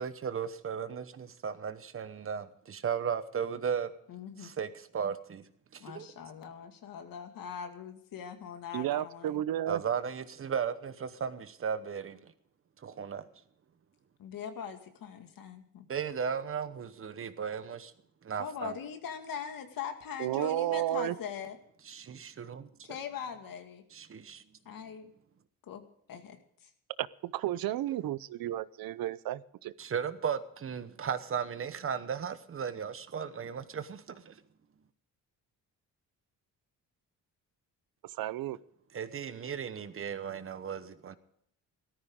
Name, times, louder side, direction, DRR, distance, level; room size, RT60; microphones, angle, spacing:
voice 1, 0.0-3.9 4.4-5.5 5.7-6.1 9.7-12.3 12.8-13.3 15.9-17.9 18.2-18.7 21.8-22.7 23.9-24.4 29.8-34.4 38.9-41.2, right 7 dB, 40° right, 1.1 m, -36 dB
voice 2, 4.1-4.5 5.8-9.4 14.2-15.9 18.4-21.6 22.8-23.8 24.7-25.1 25.7-26.7, left 7 dB, 75° left, 2.2 m, -41 dB
voice 3, 8.7-9.8 20.2-21.1 27.0-29.7 38.2-38.6, right 13 dB, 85° right, 0.7 m, -32 dB
17.5 x 14.0 x 3.7 m
cardioid pair, 160°, 34 cm